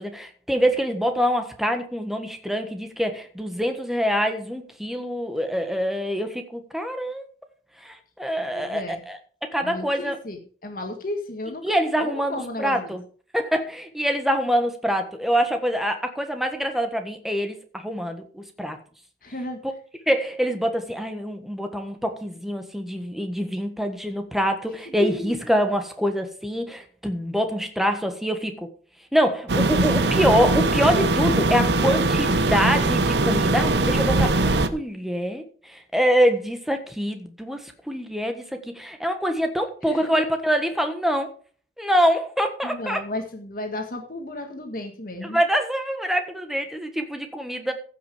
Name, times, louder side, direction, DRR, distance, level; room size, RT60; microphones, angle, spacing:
voice 1, 0.0-7.2 7.8-10.2 11.6-13.0 13.3-18.8 20.1-28.7 29.1-38.4 38.7-41.3 41.8-43.0 45.2-47.7, equal, ahead, 5 dB, 1.5 m, -25 dB
voice 2, 8.5-9.0 9.6-13.0 19.2-19.6 24.9-25.5 39.8-40.2 42.6-45.4, left 2 dB, 50° left, 4 dB, 1.8 m, -33 dB
sound 1, 29.5-34.7, right 2 dB, 75° right, 0.9 m, -21 dB
15.0 x 6.1 x 5.1 m, 0.43 s
head